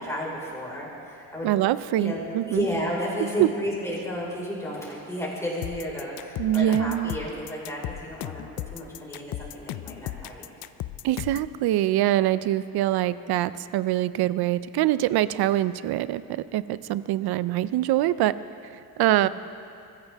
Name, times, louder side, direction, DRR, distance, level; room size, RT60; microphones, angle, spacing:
voice 1, 0.0-1.5 2.0-2.2 2.5-8.4 8.7-10.5 19.2-19.3, equal, 5° left, -5 dB, 4.9 m, -32 dB
voice 2, 1.4-2.7 3.4-3.5 6.4-7.1 11.0-18.4 19.0-19.3, right 13 dB, 65° right, 15 dB, 0.6 m, -24 dB
sound 1, 5.6-11.5, left 15 dB, 60° left, 0.5 m, -35 dB
25.5 x 15.0 x 3.5 m, 2.6 s
cardioid pair, 140°, 41 cm